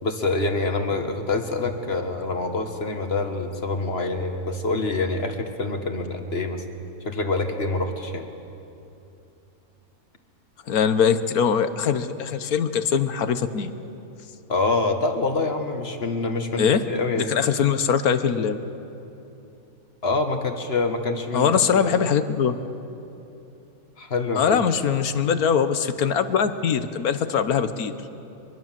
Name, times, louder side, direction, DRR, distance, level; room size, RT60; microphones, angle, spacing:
voice 1, 0.0-6.6 7.1-8.3 14.5-17.4 20.0-22.0 24.0-24.6, left 3 dB, 45° left, 6 dB, 1.8 m, -26 dB
voice 2, 10.7-13.7 16.6-16.8 17.2-18.7 21.3-22.6 24.4-28.0, left 7 dB, 75° left, 11 dB, 1.5 m, -22 dB
23.5 x 23.0 x 7.5 m, 2.8 s
omnidirectional pair, 1.6 m